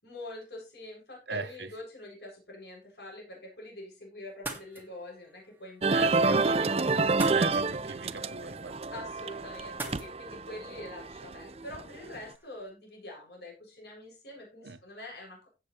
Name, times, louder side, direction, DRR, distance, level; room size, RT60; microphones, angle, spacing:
voice 1, 0.0-6.5 8.9-15.5, left 1 dB, 70° left, 7.5 m, -45 dB
voice 2, 1.3-1.7 5.9-8.7 14.6-14.8, right 4 dB, 80° right, 1.1 m, -39 dB
sound 1, 4.3-12.7, right 2 dB, 10° right, 2.1 m, -47 dB
sound 2, 5.8-12.2, right 3 dB, 35° right, 0.6 m, -28 dB
17.5 x 7.7 x 3.3 m
head